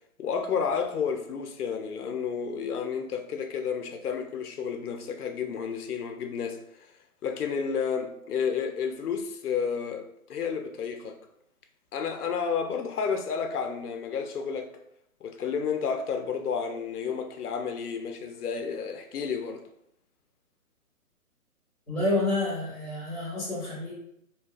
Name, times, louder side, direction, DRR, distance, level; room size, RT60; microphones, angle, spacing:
voice 1, 0.2-6.9 7.2-11.2 11.9-14.7 15.2-19.6, left 6 dB, 85° left, 0.5 m, -31 dB
voice 2, 21.9-23.9, left 2 dB, 5° right, 0.5 m, -29 dB
2.7 x 2.2 x 2.3 m
hypercardioid pair, 150°, 44 cm